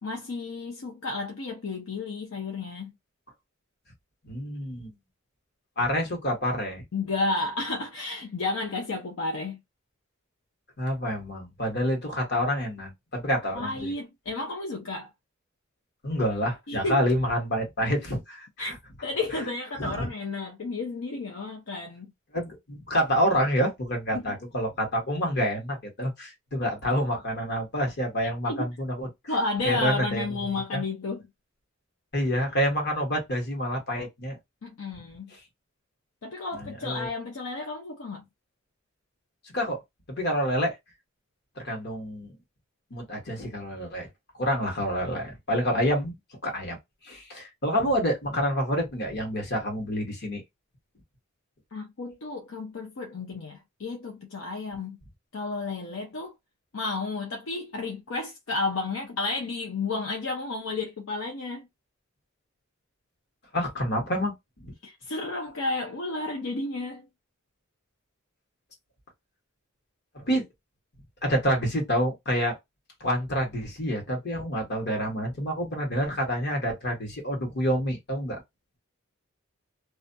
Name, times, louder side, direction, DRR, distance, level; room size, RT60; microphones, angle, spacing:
voice 1, 0.0-2.9 6.9-9.6 13.5-15.1 16.7-17.1 18.6-18.7 19.0-22.1 24.1-24.4 28.5-28.7 29.3-31.3 34.6-35.3 36.2-38.2 51.7-55.0 55.3-56.3 56.7-61.7 64.8-67.1, left 3 dB, 70° left, 0.6 m, -32 dB
voice 2, 4.2-4.9 5.8-6.8 10.8-13.9 16.0-18.7 19.8-20.1 22.3-29.1 29.6-30.3 30.7-30.8 32.1-34.4 36.6-37.1 39.4-39.8 40.1-40.8 41.6-42.4 42.9-44.1 44.4-46.1 46.4-46.8 47.0-50.4 63.5-64.7 70.1-70.5 71.2-72.6 73.0-78.4, equal, 50° left, 1.1 m, -28 dB
2.4 x 2.2 x 2.6 m
head